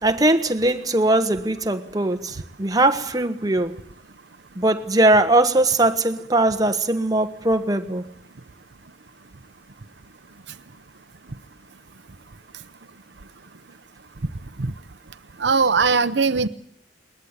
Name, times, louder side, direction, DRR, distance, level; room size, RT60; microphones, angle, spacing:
voice 1, 0.0-3.8 4.6-8.0, right 2 dB, 20° right, 1.3 m, -20 dB
voice 2, 15.4-16.5, right 4 dB, 70° right, 0.8 m, -19 dB
21.0 x 20.5 x 8.3 m
head